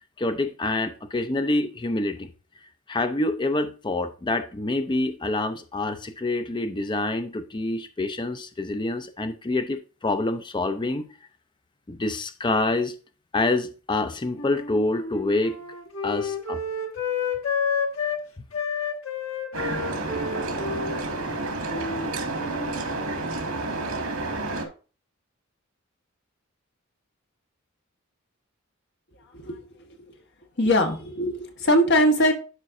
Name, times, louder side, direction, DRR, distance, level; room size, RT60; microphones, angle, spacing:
voice 1, 0.2-2.3 2.9-11.1 11.9-12.9 13.3-15.6 16.0-16.6, left 2 dB, 20° left, 0.5 m, -26 dB
Wind instrument woodwind instrument, 14.3-18.2 18.5-22.1 22.4-22.9, left 5 dB, 75° left, 1.3 m, -30 dB
sound 1, 19.5-24.7, right 2 dB, 80° right, 2.1 m, -30 dB
voice 2, 30.6-32.3, equal, 55° left, 1.3 m, -20 dB
11.5 x 5.0 x 2.6 m
head